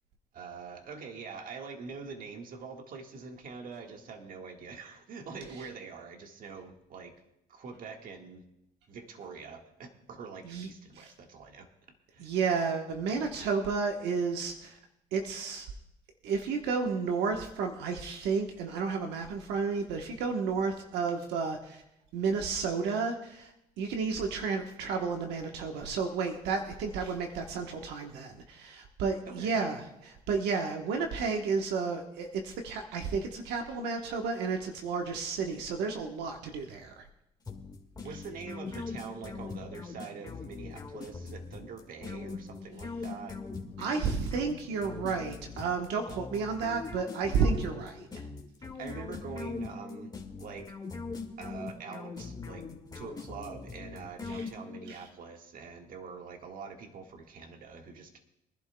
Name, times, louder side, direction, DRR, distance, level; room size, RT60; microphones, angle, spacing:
voice 1, 0.3-7.1 7.5-8.4 8.9-11.7 12.1-12.3 29.2-29.5 38.0-43.4 48.8-50.7 51.4-52.6 52.9-58.2, right 5 dB, 55° right, 3 dB, 1.7 m, -44 dB
voice 2, 12.2-14.8 15.1-15.7 16.2-21.8 22.1-37.1 43.8-48.3 54.3-54.5 54.9-55.0, right 5 dB, 85° right, 3 dB, 1.2 m, -32 dB
sound 1, 37.5-54.9, left 4 dB, 20° left, 1.8 m, -41 dB
24.0 x 11.5 x 2.3 m, 0.82 s
cardioid pair, 110°, 17 cm